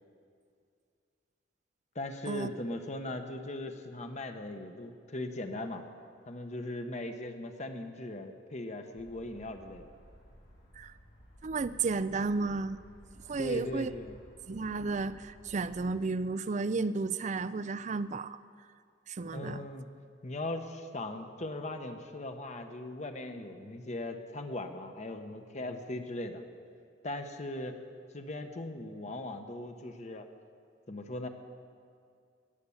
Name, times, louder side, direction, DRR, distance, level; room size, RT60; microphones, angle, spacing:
voice 1, 1.9-5.8 6.3-9.9 13.4-14.2 19.3-19.9 20.2-26.4 27.0-27.8 28.1-30.3 30.9-31.3, left 1 dB, 40° left, 6 dB, 1.0 m, -39 dB
sound 1, 8.9-15.9, equal, 70° left, 5.1 m, -56 dB
voice 2, 11.4-12.8 13.3-13.9 14.5-18.4 19.1-19.6, right 4 dB, 40° right, 15 dB, 0.4 m, -33 dB
19.5 x 8.2 x 7.2 m, 2.3 s
head